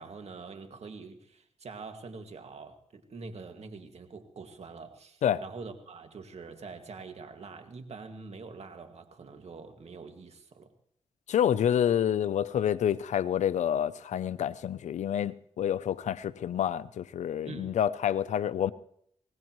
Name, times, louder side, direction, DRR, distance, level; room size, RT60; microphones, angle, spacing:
voice 1, 0.0-10.7 17.4-17.7, right 4 dB, 65° right, 2.1 m, -45 dB
voice 2, 11.3-18.7, left 9 dB, 85° left, 0.6 m, -28 dB
23.5 x 19.0 x 3.1 m
cardioid pair, 55°, 12 cm